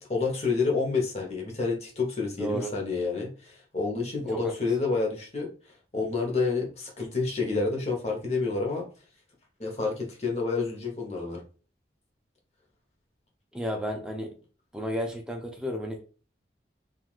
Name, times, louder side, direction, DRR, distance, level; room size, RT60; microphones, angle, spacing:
voice 1, 0.0-8.9 9.6-11.4, left 4 dB, 35° left, 0.8 m, -29 dB
voice 2, 2.4-2.7 4.3-4.5 13.5-14.3 14.7-16.0, equal, 5° right, 0.4 m, -32 dB
3.2 x 2.4 x 2.3 m
head